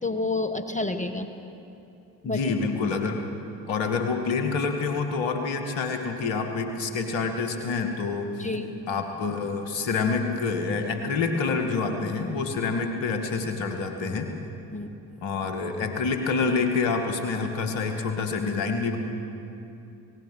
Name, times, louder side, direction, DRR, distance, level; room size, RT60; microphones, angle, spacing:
voice 1, 0.0-1.3 2.2-2.5 8.4-8.7 14.7-14.9, left 2 dB, 15° left, 6 dB, 1.6 m, -29 dB
voice 2, 2.2-3.2 3.7-8.3 8.9-14.3 15.2-19.0, left 4 dB, 70° left, 5 dB, 2.1 m, -27 dB
26.5 x 18.5 x 5.6 m, 2.7 s
hypercardioid pair, 45°, 48 cm